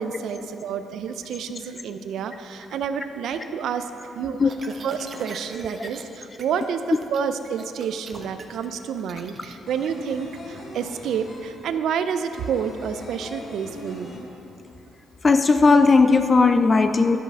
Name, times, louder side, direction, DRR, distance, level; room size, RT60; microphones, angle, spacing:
voice 1, 0.0-3.9 4.1-4.4 4.8-6.8 7.1-14.1, right 7 dB, 75° right, 9 dB, 0.4 m, -29 dB
sound 1, 4.5-6.0 6.3-6.7 6.9-9.5, right 4 dB, 45° right, 0.9 m, -40 dB
sound 2, 7.9-8.0 8.3-14.9 15.1-15.2 15.5-16.3, left 1 dB, 55° left, 2.0 m, -41 dB
voice 2, 15.2-17.2, left 4 dB, 30° left, 8 dB, 0.4 m, -17 dB
10.5 x 5.6 x 6.1 m, 2.9 s
cardioid pair, 90°, 0 cm